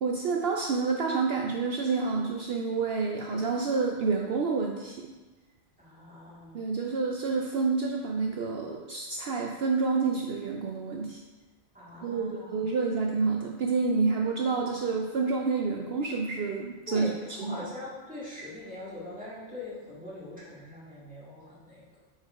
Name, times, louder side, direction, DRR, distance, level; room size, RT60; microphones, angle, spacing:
voice 1, 0.0-5.0 6.5-11.2 12.0-17.6, right 4 dB, 65° right, 0 dB, 0.7 m, -28 dB
voice 2, 5.8-6.6 11.7-12.7 16.9-21.9, left 2 dB, 5° right, -9 dB, 2.0 m, -42 dB
4.7 x 4.6 x 4.6 m, 1.2 s
omnidirectional pair, 1.3 m